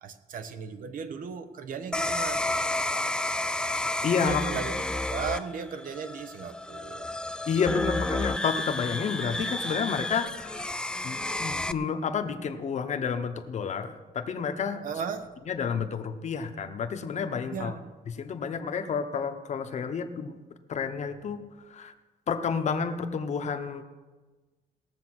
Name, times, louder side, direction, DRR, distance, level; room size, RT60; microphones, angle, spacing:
voice 1, 0.0-2.5 4.2-4.8 5.1-7.1 14.8-15.4 17.5-17.9, right 6 dB, 65° right, 10 dB, 1.1 m, -36 dB
sound 1, 1.9-11.7, left 1 dB, 5° left, 0.3 m, -31 dB
voice 2, 4.0-4.4 7.5-10.8 11.0-14.8 15.5-17.7 18.1-20.4 20.7-21.4 21.7-21.9 22.3-23.8, left 6 dB, 50° left, 6 dB, 1.0 m, -30 dB
18.0 x 6.9 x 6.1 m, 1.3 s
cardioid pair, 110°, 15 cm